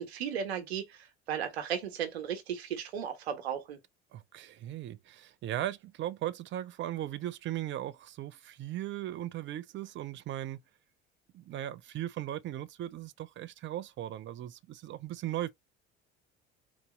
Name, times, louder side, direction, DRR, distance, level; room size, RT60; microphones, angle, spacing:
voice 1, 0.0-3.8, right 8 dB, 70° right, 1.2 m, -35 dB
voice 2, 4.1-10.6 11.3-15.5, right 13 dB, 35° right, 0.6 m, -38 dB
4.0 x 2.7 x 4.8 m
figure-of-eight pair, 60°, 33 cm